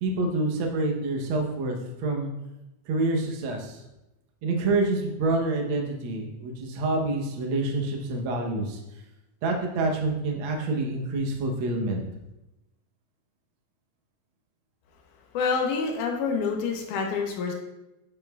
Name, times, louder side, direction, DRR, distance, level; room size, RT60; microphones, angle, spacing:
voice 1, 0.0-2.3 2.9-3.8 4.4-8.8 9.4-12.0, right 2 dB, 85° right, 1 dB, 1.1 m, -27 dB
voice 2, 15.3-17.5, left 5 dB, 80° left, 2 dB, 2.4 m, -27 dB
10.5 x 5.4 x 2.3 m, 0.96 s
omnidirectional pair, 3.6 m